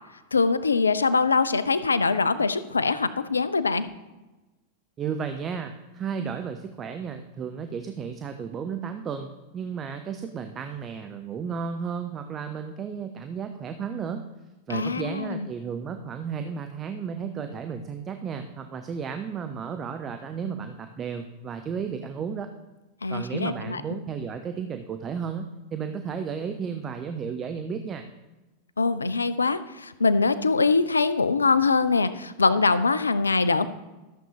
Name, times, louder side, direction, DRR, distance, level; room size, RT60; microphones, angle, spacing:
voice 1, 0.3-3.8 14.7-15.5 23.0-23.8 28.8-33.6, left 4 dB, 75° left, 14 dB, 0.5 m, -23 dB
voice 2, 5.0-14.2 14.7-22.5 23.1-28.1, right 6 dB, 25° right, 7 dB, 0.6 m, -33 dB
13.5 x 7.0 x 2.9 m, 1.1 s
figure-of-eight pair, 90°, 0 cm